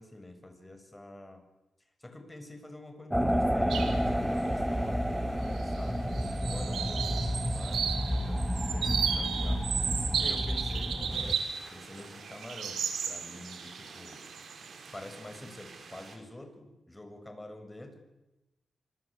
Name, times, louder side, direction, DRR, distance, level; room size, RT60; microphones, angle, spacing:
voice 1, 0.0-1.4 2.0-9.7 10.2-11.0 11.7-14.2 14.9-18.0, left 1 dB, 15° left, 7 dB, 6.9 m, -47 dB
sound 1, 3.1-11.3, equal, 5° right, 2.6 m, -30 dB
sound 2, 3.7-4.0 4.4-4.5 5.4-5.8 6.1-11.6 12.0-14.7, right 7 dB, 85° right, 4.7 m, -34 dB
sound 3, 11.1-16.2, right 4 dB, 65° right, 6.1 m, -50 dB
26.0 x 24.5 x 8.7 m, 1.0 s
cardioid pair, 65°, 0 cm